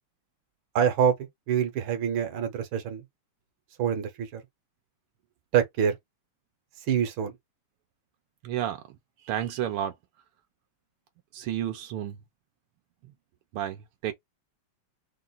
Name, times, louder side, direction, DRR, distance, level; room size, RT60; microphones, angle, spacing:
voice 1, 0.8-1.1 1.5-3.0 3.8-4.4 5.5-6.0 6.9-7.3, right 8 dB, 70° right, 1.8 m, -25 dB
voice 2, 8.4-8.8 9.2-9.9 11.3-12.2 13.5-14.1, right 11 dB, 85° right, 1.7 m, -31 dB
4.5 x 2.5 x 4.0 m
omnidirectional pair, 2.4 m